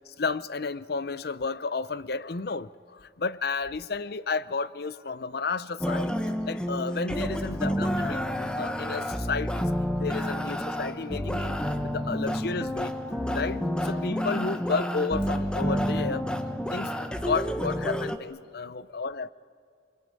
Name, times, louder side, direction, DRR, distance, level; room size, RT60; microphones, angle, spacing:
voice 1, 0.0-6.1 6.5-9.7 10.0-16.3 16.7-19.3, left 4 dB, 55° left, 0.6 m, -32 dB
sound 1, 5.8-18.2, equal, 5° left, 1.0 m, -29 dB
26.5 x 24.5 x 8.9 m
head